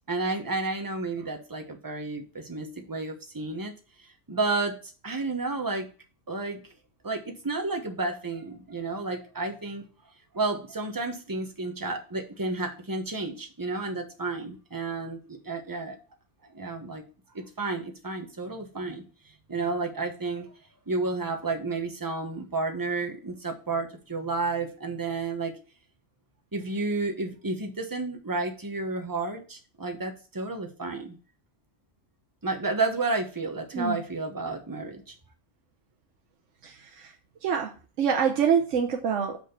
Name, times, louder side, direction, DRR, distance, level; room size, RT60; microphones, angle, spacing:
voice 1, 0.1-3.7 4.3-4.7 5.0-5.9 6.3-6.6 7.0-9.8 10.3-15.2 15.4-16.0 16.5-17.0 17.3-19.0 19.5-20.5 20.9-25.5 26.5-31.2 32.4-35.1, right 3 dB, 20° right, 3 dB, 1.1 m, -31 dB
voice 2, 36.6-37.1 37.4-39.4, right 7 dB, 85° right, 2 dB, 1.2 m, -26 dB
6.3 x 5.1 x 5.2 m, 0.36 s
omnidirectional pair, 1.2 m